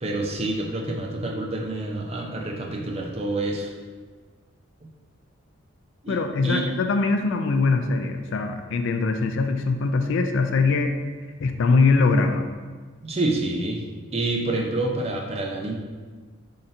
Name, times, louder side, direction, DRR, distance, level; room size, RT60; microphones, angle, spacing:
voice 1, 0.0-3.7 6.0-6.2 6.4-6.7 13.0-13.8 14.1-15.7, right 2 dB, 30° right, 0 dB, 0.5 m, -27 dB
voice 2, 6.1-10.9 11.4-12.5, left 3 dB, 60° left, 6 dB, 0.3 m, -22 dB
3.8 x 2.7 x 4.3 m, 1.5 s
head